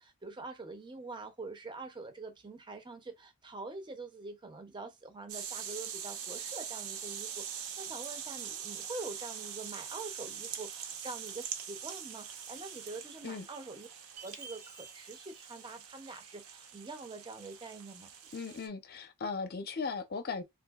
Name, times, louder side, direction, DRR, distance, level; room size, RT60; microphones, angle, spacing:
voice 1, 0.2-13.9 14.2-18.1, right 3 dB, 20° right, 0.5 m, -45 dB
sound 1, 5.3-18.7, right 8 dB, 70° right, 0.6 m, -43 dB
Chime, 14.2-16.7, right 5 dB, 90° right, 1.8 m, -54 dB
voice 2, 18.3-20.4, left 4 dB, 45° left, 0.5 m, -37 dB
3.5 x 2.6 x 2.2 m
head